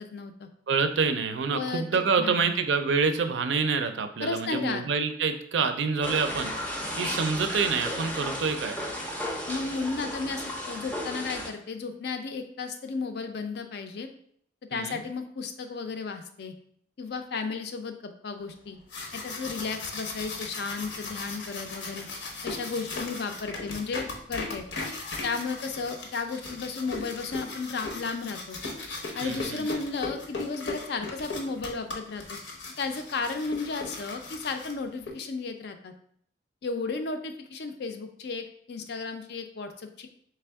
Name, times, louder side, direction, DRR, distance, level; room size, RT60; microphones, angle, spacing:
voice 1, 0.0-0.5 1.5-2.6 4.2-4.8 9.5-14.1 14.7-16.5 17.0-18.8 19.1-22.1 22.4-24.6 25.2-28.6 29.1-32.4 32.8-35.9 36.6-40.1, left 4 dB, 60° left, 7 dB, 0.4 m, -34 dB
voice 2, 0.7-6.5 7.0-8.8 14.7-15.0 29.2-29.7, right 5 dB, 75° right, 8 dB, 0.4 m, -27 dB
sound 1, 6.0-11.5, left 1 dB, 10° left, 0.5 m, -34 dB
sound 2, 18.7-35.1, left 3 dB, 90° left, 0.8 m, -38 dB
3.4 x 3.3 x 3.4 m, 0.65 s
head